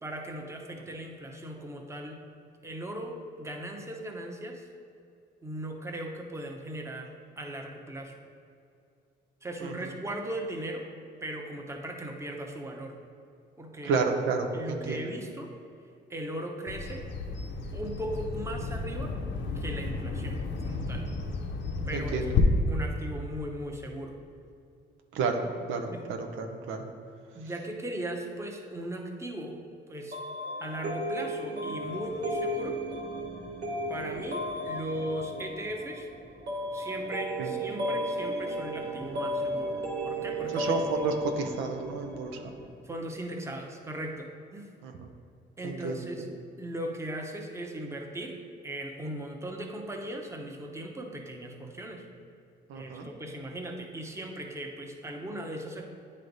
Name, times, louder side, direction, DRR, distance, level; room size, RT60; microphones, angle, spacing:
voice 1, 0.0-2.2 2.6-4.7 5.4-8.2 9.4-10.9 11.2-12.9 13.6-14.0 14.5-15.5 16.1-17.0 17.7-19.2 19.5-21.1 21.9-22.2 22.6-24.2 25.8-26.1 27.3-29.6 29.9-30.2 30.6-32.8 33.9-36.1 36.7-39.8 40.0-40.7 42.8-44.7 45.6-46.3 46.6-48.4 48.6-52.1 52.7-55.8, right 1 dB, 15° right, 1 dB, 0.8 m, -38 dB
voice 2, 13.8-15.0 21.9-22.3 25.1-25.4 25.7-26.9 37.4-37.5 40.5-42.3 44.8-45.1 45.6-46.0 52.7-53.1, right 4 dB, 85° right, 4 dB, 0.6 m, -31 dB
Bird vocalization bird call bird song, 16.7-22.4, left 5 dB, 65° left, 0.7 m, -33 dB
sound 1, 30.1-42.7, equal, 55° right, 1.4 m, -34 dB
9.5 x 3.2 x 3.9 m, 2.5 s
cardioid pair, 90°, 20 cm